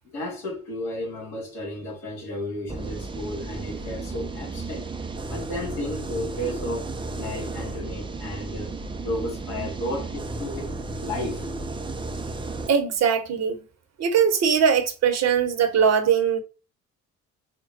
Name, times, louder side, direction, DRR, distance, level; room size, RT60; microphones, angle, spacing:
voice 1, 0.0-4.9 5.3-8.8 9.0-10.7 11.0-11.5, left 1 dB, 65° left, 2.5 m, -33 dB
sound 1, 2.7-12.7, right 3 dB, 15° right, 0.6 m, -33 dB
voice 2, 12.7-13.6 14.0-16.4, right 7 dB, 40° right, 1.0 m, -21 dB
4.4 x 2.2 x 4.1 m
figure-of-eight pair, 50°, 39 cm